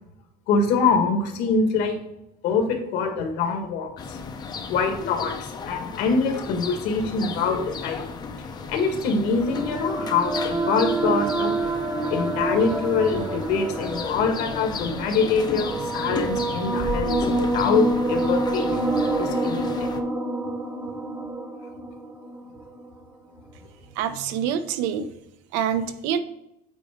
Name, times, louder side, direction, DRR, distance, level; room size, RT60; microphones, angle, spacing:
voice 1, 0.5-2.0 2.4-4.2 4.7-8.0 8.7-11.5 12.1-18.8 19.2-19.9, left 4 dB, 65° left, 4 dB, 1.6 m, -24 dB
sound 1, 4.0-20.0, left 5 dB, 20° left, 0.5 m, -34 dB
sound 2, 8.7-22.9, right 2 dB, 15° right, 0.9 m, -27 dB
voice 2, 23.9-25.1 25.5-26.2, right 8 dB, 80° right, 11 dB, 0.7 m, -26 dB
8.2 x 4.5 x 3.5 m, 0.84 s
cardioid pair, 155°, 18 cm